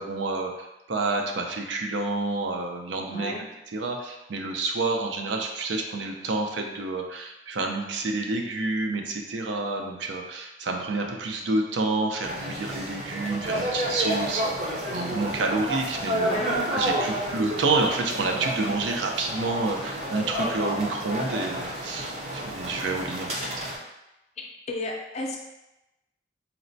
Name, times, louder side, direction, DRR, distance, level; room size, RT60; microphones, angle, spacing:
voice 1, 0.0-3.3 3.7-16.5 16.7-23.6, right 3 dB, 80° right, 2 dB, 0.5 m, -29 dB
voice 2, 3.1-3.4 16.2-16.6 24.4-25.4, left 1 dB, 35° left, 0 dB, 0.4 m, -33 dB
sound 1, 12.2-23.8, right 1 dB, 40° right, 0.6 m, -30 dB
4.1 x 2.1 x 2.6 m, 0.95 s
head